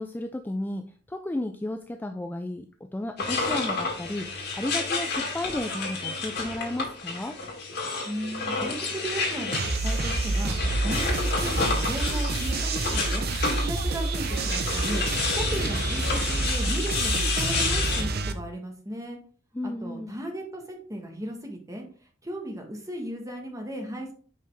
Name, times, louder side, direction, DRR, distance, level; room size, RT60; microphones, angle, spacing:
voice 1, 0.0-7.4 19.5-20.2, left 1 dB, 10° left, 6 dB, 0.3 m, -33 dB
sound 1, 3.2-18.0, left 3 dB, 60° left, 1.9 m, -30 dB
voice 2, 8.0-13.3 13.6-19.2 19.6-21.8 22.2-24.1, right 1 dB, 20° right, 2 dB, 1.3 m, -36 dB
sound 2, 9.5-18.3, right 3 dB, 55° right, 0.6 m, -28 dB
5.4 x 5.2 x 3.3 m, 0.44 s
head